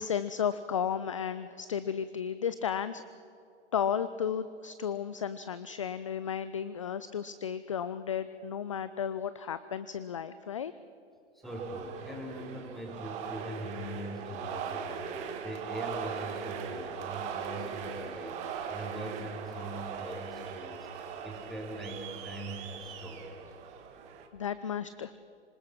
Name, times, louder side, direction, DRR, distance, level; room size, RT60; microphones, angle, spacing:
voice 1, 0.0-3.0 3.7-10.7 24.3-25.1, left 8 dB, 30° left, 14 dB, 0.4 m, -33 dB
voice 2, 11.3-15.2 15.4-23.3, right 1 dB, ahead, -2 dB, 3.4 m, -41 dB
sound 1, 11.4-24.3, right 7 dB, 20° right, 1.4 m, -40 dB
26.0 x 21.0 x 5.9 m, 2.6 s
figure-of-eight pair, 125°, 35 cm